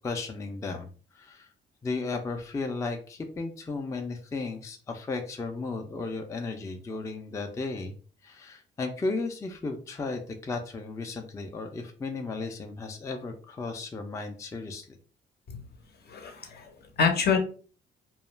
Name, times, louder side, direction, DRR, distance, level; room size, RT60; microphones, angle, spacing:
voice 1, 0.0-0.9 1.2-1.5 1.8-7.9 8.2-14.9, left 3 dB, 15° left, 4 dB, 0.3 m, -34 dB
voice 2, 16.1-17.4, left 6 dB, 55° left, 5 dB, 0.6 m, -27 dB
2.3 x 2.1 x 3.1 m, 0.40 s
cardioid pair, 90°, 20 cm